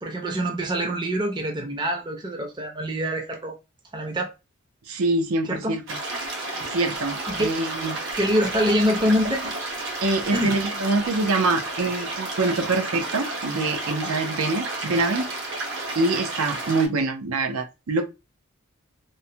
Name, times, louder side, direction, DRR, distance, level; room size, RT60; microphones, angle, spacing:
voice 1, 0.0-3.6 3.9-4.3 5.4-5.8 7.3-7.5 8.2-9.5 10.3-10.6, equal, 20° right, 0.5 m, -25 dB
voice 2, 4.9-6.0 6.6-8.0 10.0-15.3 15.9-18.0, right 3 dB, 85° right, 0.6 m, -25 dB
sound 1, 5.9-16.9, right 2 dB, 60° right, 0.8 m, -31 dB
3.1 x 2.1 x 2.7 m
head